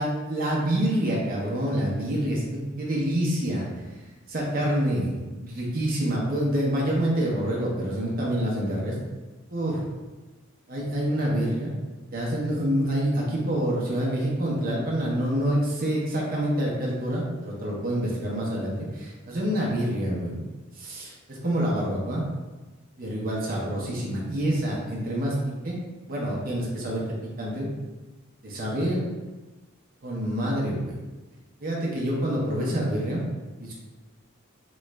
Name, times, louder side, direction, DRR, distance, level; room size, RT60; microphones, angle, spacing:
voice 1, 0.0-3.6 4.3-8.9 9.5-9.8 10.7-11.7 12.1-20.4 20.7-22.2 23.0-25.8 26.1-27.0 27.4-27.7 28.4-29.0 30.0-31.0 31.6-33.2 33.6-33.7, right 1 dB, 45° right, -4 dB, 0.7 m, -27 dB
3.0 x 2.5 x 3.2 m, 1.2 s
head